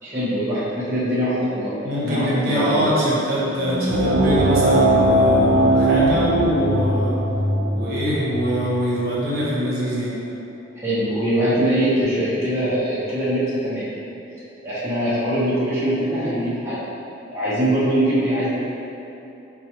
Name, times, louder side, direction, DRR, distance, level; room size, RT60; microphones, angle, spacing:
voice 1, 0.0-1.7 2.0-2.9 10.8-13.9 14.6-16.8 17.3-18.6, equal, 15° right, -12 dB, 0.7 m, -22 dB
voice 2, 1.8-7.1 7.7-10.1, equal, 50° right, -8 dB, 0.9 m, -23 dB
sound 1, 3.5-9.5, equal, 55° left, 0.5 m, -27 dB
sound 2, 3.9-9.0, right 1 dB, 70° right, 0.3 m, -20 dB
4.5 x 2.3 x 2.8 m, 2.9 s
head